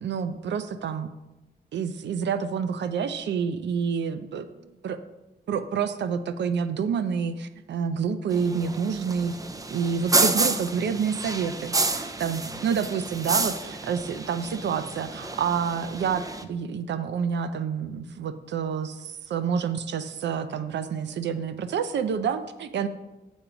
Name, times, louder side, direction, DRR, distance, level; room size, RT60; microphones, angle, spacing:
voice 1, 0.0-1.1 1.7-4.4 4.8-5.0 5.5-9.4 9.7-22.9, right 6 dB, 85° right, 11 dB, 0.5 m, -28 dB
sound 1, 8.3-16.4, right 3 dB, 20° right, 0.5 m, -29 dB
7.2 x 4.9 x 6.9 m, 1.1 s
wide cardioid pair, 125°, 18 cm